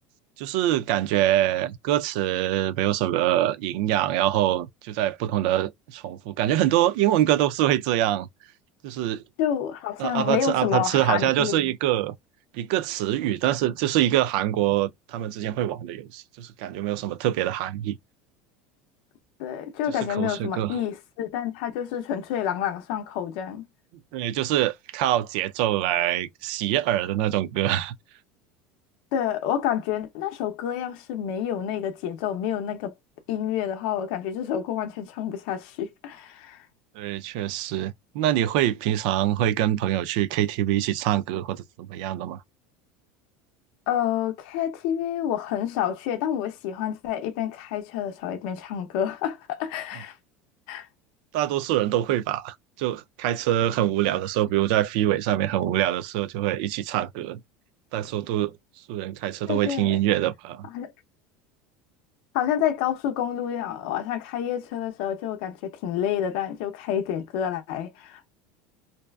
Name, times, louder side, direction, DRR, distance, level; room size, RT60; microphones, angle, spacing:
voice 1, 0.4-8.3 8.8-9.2 10.0-12.1 12.5-18.0 20.1-20.8 24.1-28.0 37.0-42.4 51.3-57.4 57.9-58.6 58.9-60.7, right 12 dB, 70° right, 0.4 m, -25 dB
voice 2, 9.4-11.7 19.4-23.7 29.1-32.9 33.3-36.7 43.9-50.2 50.7-50.9 59.5-60.0 60.7-60.9 62.3-68.3, left 10 dB, 65° left, 0.6 m, -28 dB
2.6 x 2.2 x 2.3 m
cardioid pair, 155°, 5 cm